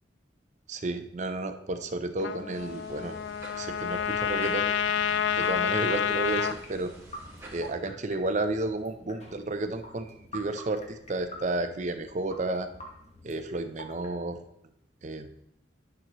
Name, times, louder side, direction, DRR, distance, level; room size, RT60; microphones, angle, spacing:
voice 1, 0.7-3.2 3.6-4.7 5.4-6.9 7.5-12.7 13.2-14.4 15.0-15.3, right 2 dB, 40° right, 9 dB, 0.6 m, -32 dB
Trumpet, 2.2-6.6, left 8 dB, 70° left, 0.3 m, -29 dB
sound 1, 2.5-7.7, right 1 dB, 15° right, 1.5 m, -47 dB
sound 2, 5.2-14.1, equal, 35° left, 1.2 m, -47 dB
10.5 x 6.1 x 3.0 m, 0.76 s
head